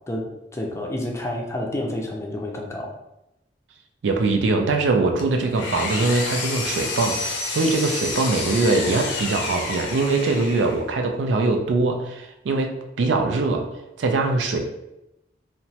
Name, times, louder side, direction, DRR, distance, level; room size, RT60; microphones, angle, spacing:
voice 1, 0.1-2.9, left 1 dB, 15° left, 0 dB, 0.4 m, -29 dB
voice 2, 4.0-13.7 14.0-14.6, right 3 dB, 85° right, 4 dB, 0.4 m, -22 dB
Engine, 5.2-10.9, left 3 dB, 75° left, 0.5 m, -29 dB
2.9 x 2.1 x 2.7 m, 0.90 s
head